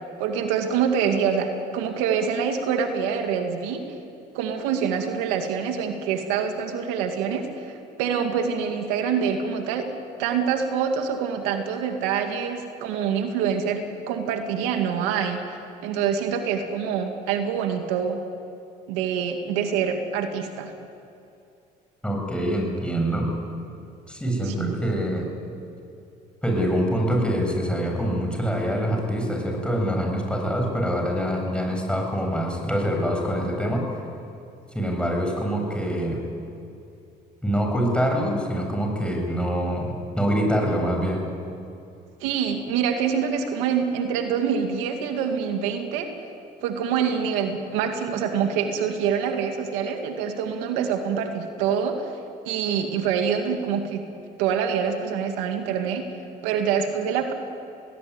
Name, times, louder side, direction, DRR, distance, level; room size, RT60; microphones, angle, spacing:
voice 1, 0.2-3.8 4.3-9.9 10.2-15.6 15.8-18.2 18.9-20.7 24.4-24.8 42.2-46.1 46.6-52.2 52.5-54.0 54.4-56.0 56.4-57.3, right 7 dB, 90° right, 5 dB, 2.1 m, -25 dB
voice 2, 22.0-23.3 24.1-25.3 26.4-33.8 34.7-36.2 37.4-41.2, equal, 5° left, 1 dB, 7.2 m, -25 dB
19.0 x 18.5 x 9.6 m, 2.6 s
supercardioid pair, 80°, 20 cm